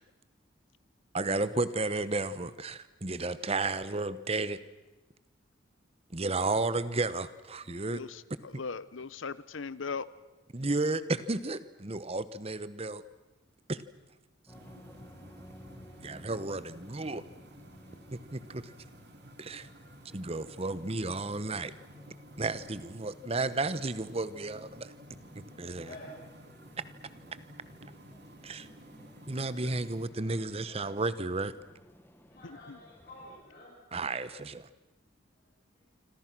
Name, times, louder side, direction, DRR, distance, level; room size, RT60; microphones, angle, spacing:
voice 1, 1.1-4.6 6.1-8.0 10.5-13.0 13.7-13.8 16.0-17.2 18.1-18.7 19.4-19.7 20.1-21.7 22.4-24.9 25.3-25.9 28.4-28.7 29.3-31.6 33.9-34.7, right 3 dB, 30° right, 15 dB, 1.1 m, -33 dB
voice 2, 7.9-10.1 29.6-29.7 32.4-32.8, left 5 dB, 85° left, 17 dB, 0.9 m, -39 dB
sound 1, 14.5-33.4, equal, 10° left, 1.7 m, -56 dB
sound 2, 14.5-30.1, equal, 60° right, 2.6 m, -53 dB
voice 3, 25.8-26.2 30.2-30.3 30.7-30.8 32.3-33.7 34.4-34.5 35.7-36.0, left 1 dB, 45° left, -6 dB, 6.7 m, -51 dB
26.5 x 26.5 x 6.1 m, 1.1 s
head